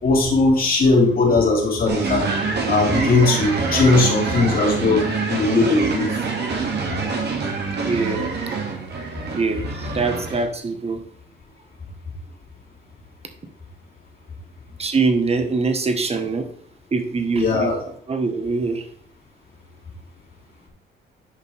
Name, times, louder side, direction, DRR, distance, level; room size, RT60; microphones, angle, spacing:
voice 1, 0.0-2.3 2.7-6.2 9.2-9.3 17.4-17.8, left 3 dB, 45° left, -2 dB, 3.4 m, -19 dB
sound 1, 1.9-10.4, right 4 dB, 55° right, 2.3 m, -25 dB
voice 2, 7.8-8.3 9.3-11.0 14.8-16.5 16.9-17.7 18.1-18.8, right 4 dB, 30° right, 7 dB, 1.5 m, -23 dB
10.0 x 5.3 x 3.5 m, 0.64 s
cardioid pair, 90°, 20 cm